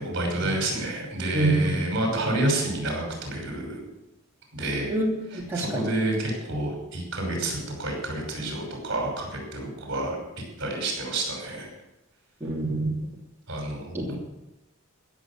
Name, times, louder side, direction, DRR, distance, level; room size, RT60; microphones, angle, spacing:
voice 1, 0.0-3.8 4.5-4.9 5.3-10.2 10.6-11.7 13.5-14.2, right 2 dB, 55° right, 1 dB, 5.7 m, -29 dB
voice 2, 1.3-1.8 4.9-5.9 12.4-12.9 13.9-14.2, right 2 dB, 10° right, -4 dB, 2.8 m, -26 dB
16.0 x 7.3 x 8.7 m, 0.93 s
head